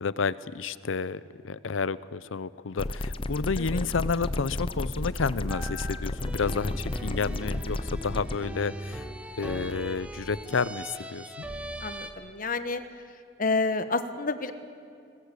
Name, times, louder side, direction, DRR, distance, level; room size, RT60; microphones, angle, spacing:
voice 1, 0.0-9.1 9.4-11.3, left 5 dB, 85° left, 17 dB, 0.6 m, -30 dB
sound 1, 2.8-8.4, left 1 dB, 25° left, 0.7 m, -32 dB
sound 2, 5.5-12.1, right 1 dB, 5° right, 1.1 m, -39 dB
voice 2, 11.8-12.8 13.4-14.5, left 3 dB, 45° left, 10 dB, 1.2 m, -29 dB
21.0 x 19.5 x 8.2 m, 2.3 s
head